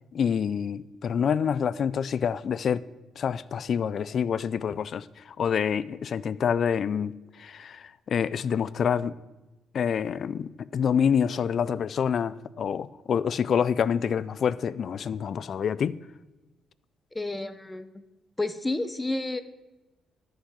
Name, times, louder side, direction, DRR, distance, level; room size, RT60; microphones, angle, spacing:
voice 1, 0.1-2.8 3.2-7.1 7.4-9.2 9.7-16.0, left 7 dB, 55° left, 19 dB, 0.4 m, -27 dB
voice 2, 17.1-18.0 18.4-19.4, left 2 dB, 15° left, 13 dB, 0.7 m, -30 dB
13.0 x 5.9 x 6.4 m, 1.1 s
cardioid pair, 90°, 0 cm